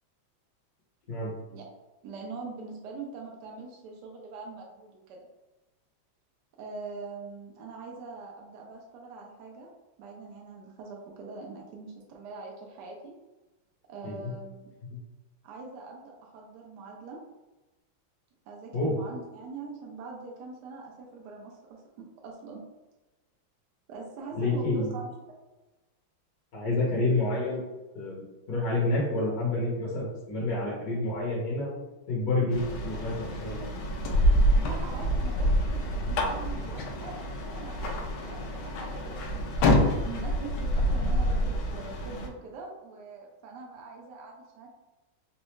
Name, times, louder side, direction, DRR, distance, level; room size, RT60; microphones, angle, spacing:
voice 1, 2.0-5.3 6.6-9.7 10.0-13.1 13.9-14.7 15.4-17.2 18.5-22.6 23.9-25.1 34.6-39.7 40.0-44.7, right 4 dB, 70° right, -1 dB, 1.0 m, -43 dB
voice 2, 24.4-24.9 26.5-27.6 27.9-33.6, left 2 dB, 55° left, -5 dB, 1.2 m, -29 dB
sound 1, 32.5-42.3, equal, 85° left, 1.4 m, -27 dB
4.1 x 2.3 x 3.0 m, 1.1 s
omnidirectional pair, 2.2 m